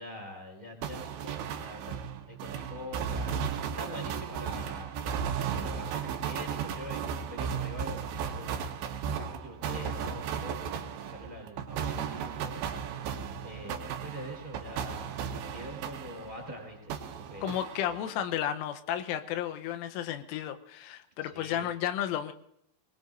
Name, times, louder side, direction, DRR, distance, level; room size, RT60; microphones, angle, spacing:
voice 1, 0.0-3.4 3.8-8.6 9.1-12.6 13.4-17.0 17.3-17.5 21.2-21.7, equal, 10° right, 0 dB, 3.2 m, -44 dB
sound 1, 0.8-16.5 16.9-18.2, right 7 dB, 75° right, 3.2 m, -35 dB
voice 2, 17.4-22.3, left 10 dB, 90° left, 8 dB, 3.4 m, -33 dB
25.0 x 20.0 x 2.6 m, 0.77 s
omnidirectional pair, 5.6 m